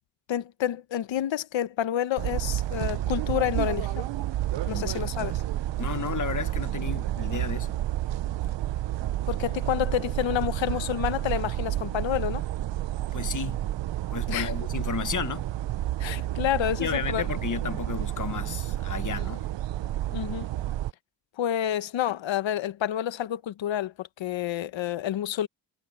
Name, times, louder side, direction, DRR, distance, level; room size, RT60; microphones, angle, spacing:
voice 1, 0.3-4.1 4.7-5.4 9.3-12.4 14.3-14.5 16.0-17.2 20.1-20.5 21.4-25.5, left 11 dB, 75° left, 1.2 m, -29 dB
sound 1, 2.2-20.9, right 13 dB, 70° right, 0.8 m, -30 dB
voice 2, 4.6-5.3 5.8-7.7 13.1-13.6 14.1-15.5 16.8-19.4, left 7 dB, 40° left, 1.3 m, -33 dB
cardioid pair, 85°, 46 cm